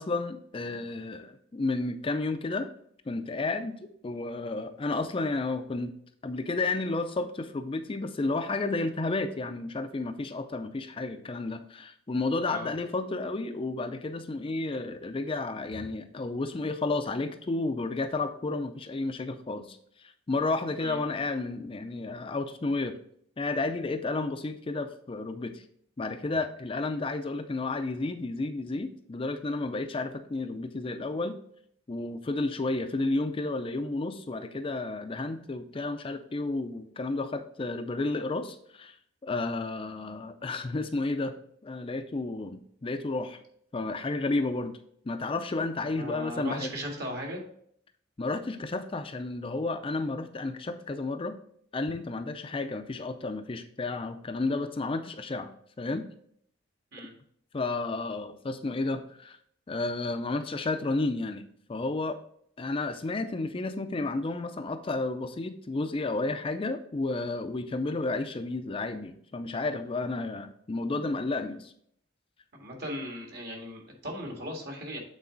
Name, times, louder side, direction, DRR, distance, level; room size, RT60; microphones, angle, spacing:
voice 1, 0.0-2.7 3.1-5.9 6.2-23.0 23.4-25.6 26.0-31.4 31.9-38.9 39.2-41.4 41.6-43.4 43.7-44.8 45.1-46.7 48.2-51.4 51.7-56.0 57.5-59.4 59.7-62.2 62.6-71.7, left 3 dB, 30° left, 8 dB, 0.4 m, -32 dB
voice 2, 45.8-47.4 56.9-57.1 72.5-75.0, equal, 55° right, 0 dB, 1.9 m, -38 dB
8.4 x 4.0 x 3.8 m, 0.66 s
head